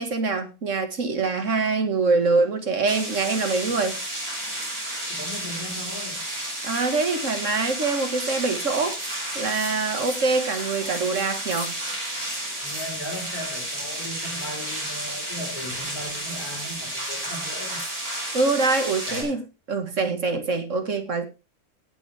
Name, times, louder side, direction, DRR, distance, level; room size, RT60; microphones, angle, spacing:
voice 1, 0.0-4.0 6.6-9.0 9.4-11.7 18.3-19.4 19.7-21.3, right 3 dB, 55° right, 2.1 m, -24 dB
sound 1, 2.8-19.2, right 1 dB, 75° right, 7.1 m, -32 dB
voice 2, 5.1-6.2 12.6-17.8 19.1-19.4, equal, 85° left, 4.6 m, -37 dB
sound 2, 8.6-8.7 8.9-9.2 9.5-11.9 12.2-13.3 13.7-14.1 14.5-19.3, right 1 dB, 90° right, 5.3 m, -45 dB
18.0 x 7.3 x 3.4 m
omnidirectional pair, 1.6 m